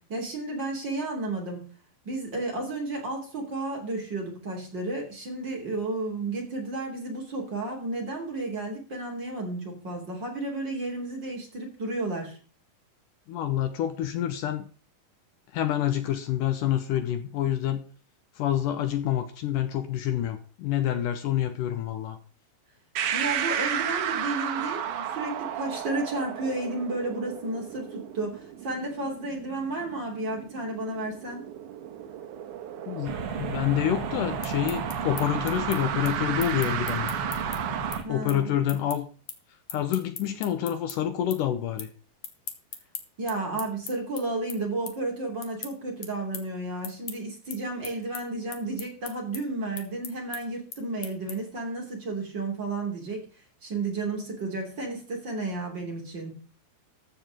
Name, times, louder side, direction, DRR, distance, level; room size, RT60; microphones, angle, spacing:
voice 1, 0.1-1.6 2.0-12.4 23.1-31.4 38.0-38.8 43.2-53.2 53.6-56.3, right 2 dB, 30° right, 1 dB, 3.4 m, -32 dB
voice 2, 13.3-14.7 15.5-17.8 18.4-22.2 32.9-37.2 38.1-39.1 39.7-41.9, left 11 dB, 75° left, 9 dB, 2.2 m, -27 dB
sound 1, 23.0-38.0, right 9 dB, 65° right, 2.3 m, -33 dB
sound 2, 33.0-38.0, right 4 dB, 45° right, 2.1 m, -34 dB
sound 3, 34.4-41.0 41.3-41.9 42.2-51.6, left 8 dB, 55° left, 2.5 m, -40 dB
14.0 x 5.1 x 7.4 m, 0.39 s
omnidirectional pair, 4.2 m